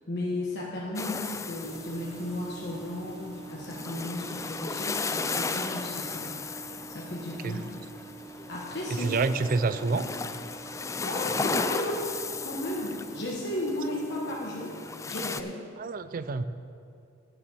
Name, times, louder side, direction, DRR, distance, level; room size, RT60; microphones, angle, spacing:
voice 1, 0.1-6.3 6.9-7.7 8.5-9.1 9.9-10.0 10.6-12.1 12.4-14.8 15.1-15.6, left 1 dB, 60° left, -4 dB, 1.3 m, -34 dB
sound 1, 1.0-15.4, left 4 dB, 15° left, 0.3 m, -36 dB
sound 2, 1.6-13.4, right 4 dB, 30° right, 0.9 m, -46 dB
voice 2, 8.9-10.1 15.8-16.5, right 4 dB, 50° right, 13 dB, 0.4 m, -28 dB
9.6 x 7.3 x 7.1 m, 2.5 s
head